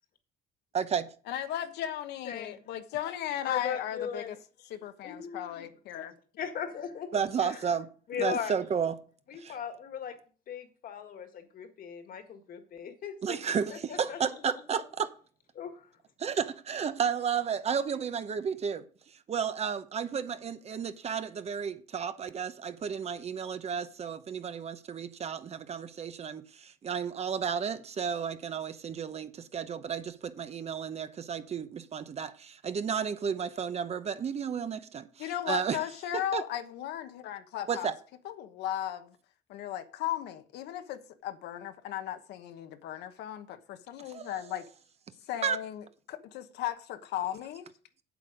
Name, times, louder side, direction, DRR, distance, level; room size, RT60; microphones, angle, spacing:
voice 1, 1.3-4.4 4.7-6.1 35.2-37.9 38.2-39.2 39.5-44.7 45.3-47.7, left 11 dB, 80° left, 1.1 m, -36 dB
voice 2, 2.2-2.6 3.4-4.3 5.0-5.7 6.4-7.6 8.1-8.6 9.3-10.2 10.5-14.4 15.5-15.9, left 7 dB, 60° left, 1.8 m, -38 dB
voice 3, 7.1-7.9 8.2-9.0 9.4-9.5 13.2-15.1 16.2-18.8 19.3-35.1 35.5-35.8 36.3-36.4 37.7-37.9 44.1-44.4 45.4-45.6, right 7 dB, 40° right, 0.9 m, -32 dB
8.3 x 8.0 x 5.1 m
cardioid pair, 110°, 17 cm